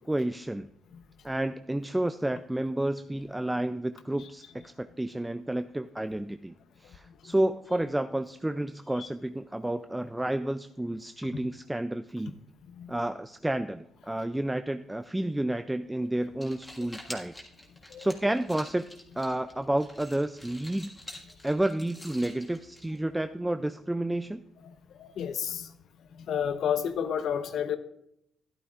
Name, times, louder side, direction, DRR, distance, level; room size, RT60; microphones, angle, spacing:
voice 1, 0.1-0.7 1.2-6.5 6.8-12.3 12.9-17.3 18.0-18.9 19.2-20.9 21.4-24.4, right 1 dB, 10° right, 9 dB, 0.3 m, -30 dB
sound 1, 16.2-23.3, left 1 dB, 10° left, 1.7 m, -48 dB
voice 2, 25.0-25.7 26.3-27.8, left 8 dB, 70° left, 10 dB, 0.8 m, -30 dB
13.0 x 11.0 x 2.4 m, 0.77 s
cardioid pair, 90°, 0 cm